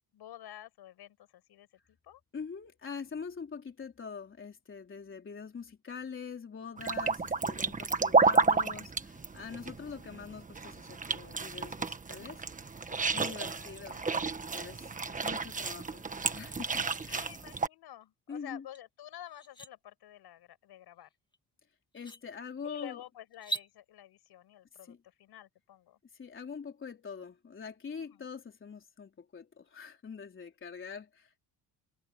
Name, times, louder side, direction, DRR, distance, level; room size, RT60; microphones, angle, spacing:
voice 1, 0.1-2.2 13.1-14.2 17.1-21.1 22.6-26.0 28.0-28.3, left 12 dB, 70° left, 6.4 m, -50 dB
voice 2, 2.3-12.4 12.9-14.0 14.5-16.0 16.3-17.3 18.3-18.6 21.9-23.0 24.8-25.0 26.1-31.4, left 6 dB, 30° left, 3.8 m, -44 dB
sound 1, 6.8-17.7, right 4 dB, 20° right, 1.4 m, -31 dB
sound 2, 18.7-18.8 19.3-19.7 21.3-21.4 21.9-22.2 23.3-23.7, right 2 dB, 10° left, 1.6 m, -38 dB
cardioid pair, 145°, 40 cm